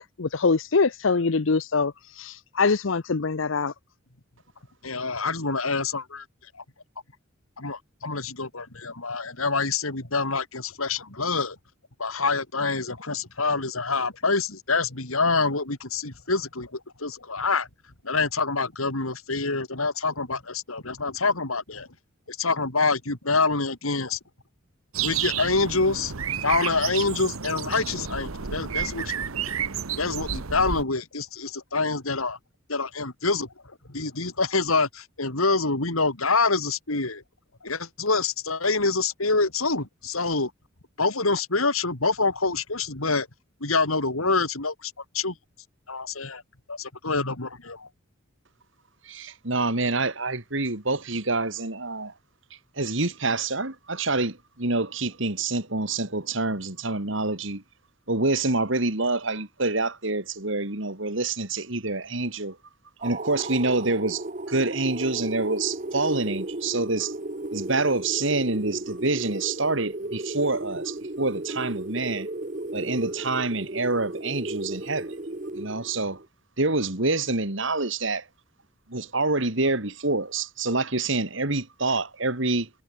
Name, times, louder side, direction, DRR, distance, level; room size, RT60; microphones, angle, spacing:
voice 1, 0.0-3.7, left 4 dB, 65° left, 0.7 m, -24 dB
voice 2, 4.8-6.3 6.5-6.6 7.6-11.6 12.0-17.7 18.0-21.9 22.3-24.2 25.0-26.1 26.4-29.1 30.0-32.4 32.7-37.2 37.6-40.5 41.0-43.3 43.6-45.4 45.9-46.4 46.7-47.9, left 3 dB, 85° left, 3.9 m, -26 dB
sound 1, 24.9-30.8, right 7 dB, 85° right, 1.2 m, -31 dB
voice 3, 49.0-52.1 52.8-57.6 58.1-62.6 63.0-64.2 64.5-67.1 67.5-72.3 72.7-76.2 76.6-78.2 78.9-82.7, right 3 dB, 60° right, 3.0 m, -27 dB
sound 2, 63.0-76.2, right 2 dB, 35° right, 1.3 m, -34 dB
head